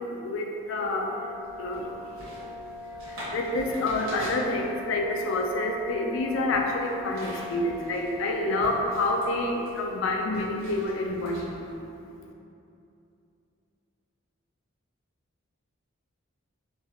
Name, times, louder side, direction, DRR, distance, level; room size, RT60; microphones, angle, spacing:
voice 1, 0.0-12.3, left 2 dB, 65° left, 1 dB, 0.3 m, -29 dB
Brass instrument, 0.9-9.8, left 1 dB, 15° right, 0.3 m, -41 dB
sound 1, 1.4-11.7, equal, 75° right, 1.1 m, -45 dB
3.0 x 2.3 x 2.8 m, 2.7 s
head